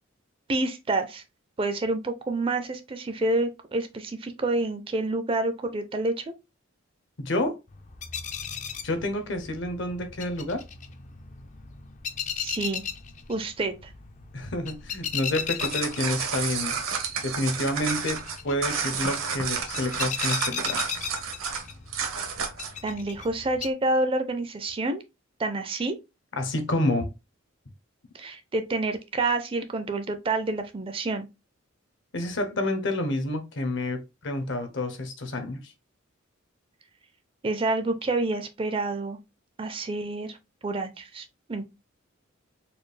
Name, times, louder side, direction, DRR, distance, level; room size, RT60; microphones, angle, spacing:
voice 1, 0.5-1.2 1.6-6.3 12.4-12.8 13.3-13.9 22.8-25.0 25.4-26.0 28.1-31.3 37.4-39.2 39.6-40.4 40.6-41.7, right 2 dB, 25° right, 0.4 m, -28 dB
voice 2, 7.2-7.6 8.8-10.6 14.3-16.8 17.2-20.8 26.3-27.1 32.1-35.7, left 1 dB, 60° left, 0.8 m, -29 dB
sound 1, 7.7-23.7, left 7 dB, 35° left, 0.4 m, -37 dB
sound 2, 15.4-22.8, right 6 dB, 80° right, 0.9 m, -30 dB
4.2 x 2.3 x 3.2 m
head